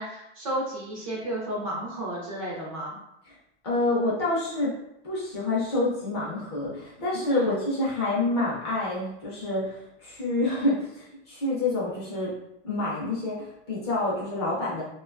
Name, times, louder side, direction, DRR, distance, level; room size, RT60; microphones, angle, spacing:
voice 1, 0.0-3.0 7.3-7.5, right 1 dB, 30° right, -4 dB, 0.4 m, -32 dB
voice 2, 3.6-4.7 5.0-12.3 12.6-14.8, left 2 dB, 25° left, -7 dB, 0.5 m, -27 dB
2.5 x 2.2 x 2.4 m, 0.84 s
supercardioid pair, 170°, 35 cm